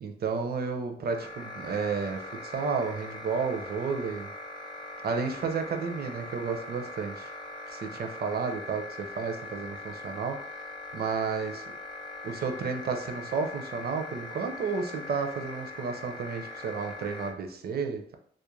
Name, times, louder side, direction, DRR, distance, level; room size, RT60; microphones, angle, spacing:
voice 1, 0.0-4.3 5.0-7.3 7.7-10.6 10.9-11.6 12.2-18.2, right 5 dB, 60° right, 5 dB, 0.5 m, -32 dB
sound 1, 1.1-17.3, left 2 dB, 25° left, 0.6 m, -41 dB
2.4 x 2.1 x 3.0 m, 0.63 s
cardioid pair, 65°, 18 cm